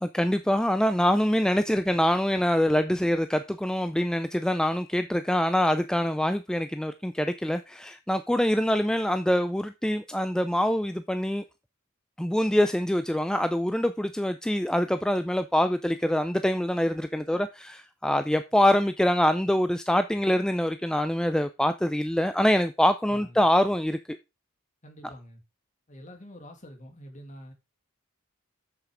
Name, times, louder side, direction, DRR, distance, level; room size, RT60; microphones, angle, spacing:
voice 1, 0.0-11.4 12.2-24.2, equal, 5° left, 0.4 m, -25 dB
voice 2, 23.1-23.5 24.8-25.4 25.9-27.5, equal, 35° left, 2.5 m, -46 dB
7.1 x 6.7 x 4.9 m
head